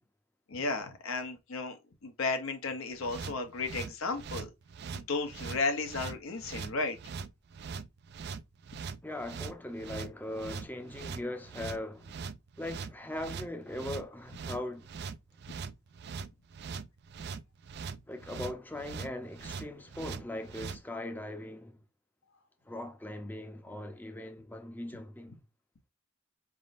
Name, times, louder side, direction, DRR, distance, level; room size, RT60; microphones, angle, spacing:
voice 1, 0.5-4.5 4.9-7.0 15.5-15.6, left 3 dB, 70° left, 0.7 m, -34 dB
sound 1, 3.0-20.8, right 5 dB, 50° right, 0.3 m, -41 dB
voice 2, 9.0-12.1 12.6-14.9 18.1-21.8 22.7-25.4, left 1 dB, 10° left, 0.6 m, -40 dB
5.1 x 3.6 x 2.5 m
head